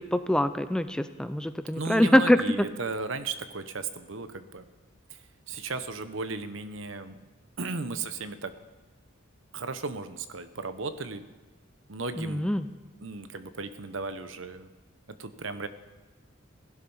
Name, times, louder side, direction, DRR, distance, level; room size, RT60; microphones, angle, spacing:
voice 1, 0.0-2.4 12.2-12.7, left 1 dB, 5° left, 11 dB, 0.4 m, -24 dB
voice 2, 1.7-4.7 5.1-5.2 5.5-7.2 7.6-8.5 9.5-11.2 11.9-12.5 13.0-14.7 15.2-15.7, right 3 dB, 75° right, 11 dB, 1.0 m, -35 dB
17.0 x 11.5 x 5.6 m, 1.2 s
head